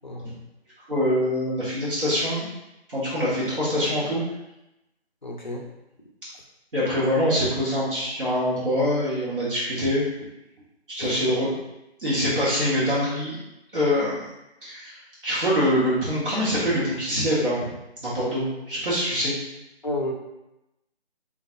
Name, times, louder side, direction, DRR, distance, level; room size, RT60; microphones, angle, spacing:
voice 1, 0.0-0.3 5.2-5.6 11.0-11.4 19.8-20.1, left 1 dB, 45° left, 0 dB, 0.4 m, -31 dB
voice 2, 0.9-2.4 2.9-4.2 6.7-10.0 10.9-11.5 12.0-13.4 13.7-14.2 14.6-15.0 15.2-17.7 18.0-19.3, equal, 50° right, -9 dB, 1.1 m, -24 dB
3.2 x 2.3 x 2.6 m, 0.92 s
figure-of-eight pair, 160°, 33 cm